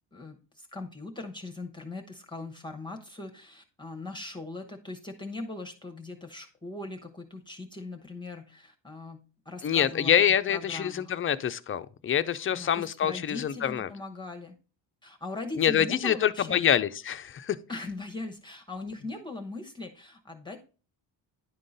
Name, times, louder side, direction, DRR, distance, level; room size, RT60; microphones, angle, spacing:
voice 1, 0.1-11.1 12.5-14.5 15.0-16.6 17.7-20.6, left 2 dB, 10° left, 0.9 m, -40 dB
voice 2, 9.6-13.9 15.6-17.6, left 9 dB, 30° left, 0.4 m, -26 dB
10.5 x 3.8 x 4.0 m
cardioid pair, 105°, 44 cm